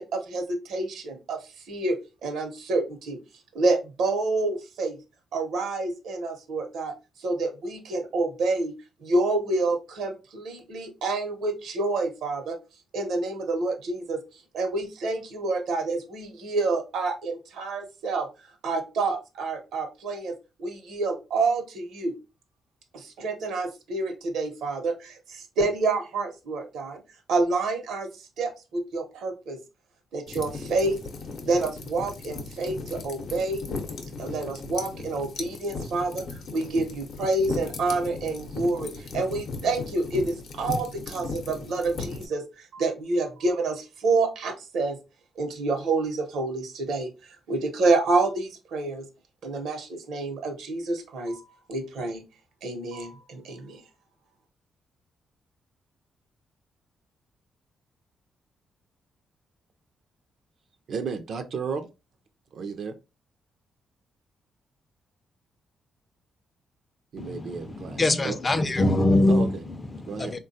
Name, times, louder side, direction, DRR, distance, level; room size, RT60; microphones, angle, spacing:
voice 1, 0.0-1.4 1.7-3.2 3.5-5.0 5.3-6.9 7.2-8.7 9.0-12.6 12.9-14.2 14.5-18.3 18.6-22.1 22.9-27.0 27.3-29.6 30.1-31.0 31.4-33.6 34.2-36.2 36.5-45.0 45.4-47.1 47.5-49.1 49.4-51.4 51.7-52.2 52.6-53.8, right 3 dB, 85° right, 0.7 m, -28 dB
sound 1, 30.3-42.3, left 4 dB, 70° left, 0.6 m, -37 dB
voice 2, 60.9-61.9 62.5-62.9 67.1-68.4 69.3-69.5 70.1-70.3, right 5 dB, 65° right, 0.4 m, -33 dB
voice 3, 67.2-70.4, left 2 dB, 25° left, 0.4 m, -24 dB
3.5 x 2.2 x 2.6 m
cardioid pair, 105°, 0 cm